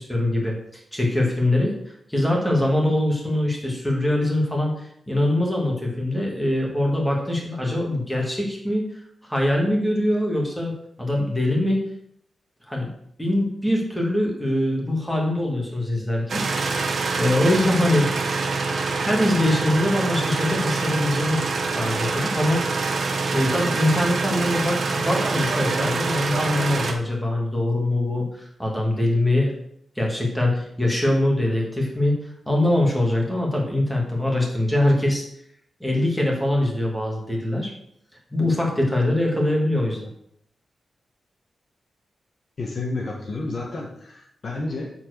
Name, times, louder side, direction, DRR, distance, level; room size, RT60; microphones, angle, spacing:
voice 1, 0.0-8.9 9.2-11.9 12.7-12.9 13.2-16.4 16.8-18.1 18.9-21.4 21.7-22.6 23.3-29.5 30.0-32.2 32.5-35.2 35.8-37.7 38.3-40.1, left 1 dB, 5° left, -1 dB, 1.9 m, -23 dB
sound 1, 16.3-26.9, right 4 dB, 55° right, 1.0 m, -25 dB
voice 2, 42.6-44.9, left 2 dB, 40° left, -1 dB, 1.2 m, -30 dB
7.4 x 4.4 x 6.4 m, 0.71 s
wide cardioid pair, 165°, 0 cm